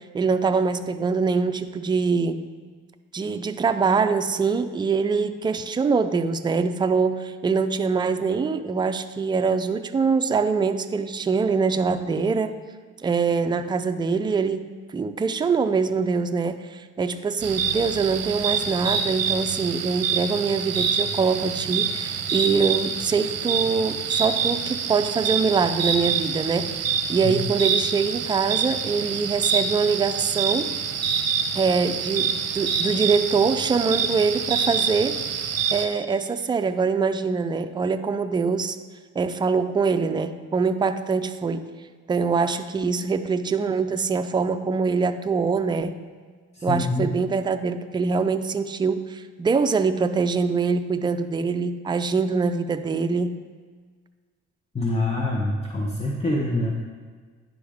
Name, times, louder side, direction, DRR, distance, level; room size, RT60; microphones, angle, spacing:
voice 1, 0.1-2.4 3.1-12.5 13.0-14.7 14.9-26.7 27.1-30.7 31.6-35.2 35.7-38.8 39.2-41.7 42.1-45.9 46.6-53.4, right 5 dB, 15° right, 8 dB, 0.3 m, -24 dB
sound 1, 17.4-35.9, right 6 dB, 60° right, 0.7 m, -26 dB
voice 2, 46.5-47.1 54.7-56.7, left 1 dB, 20° left, -3 dB, 0.9 m, -25 dB
10.0 x 4.9 x 3.5 m, 1.6 s
cardioid pair, 90°, 30 cm